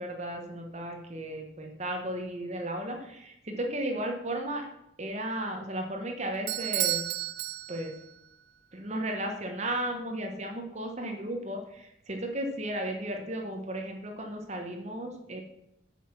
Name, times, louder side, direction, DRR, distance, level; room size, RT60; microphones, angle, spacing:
voice 1, 0.0-4.6 5.0-7.0 7.7-7.9 8.7-15.4, right 1 dB, 35° right, 3 dB, 1.2 m, -34 dB
Bell / Doorbell, 6.5-8.2, right 14 dB, 55° right, 0.5 m, -32 dB
8.7 x 5.9 x 5.9 m, 0.81 s
head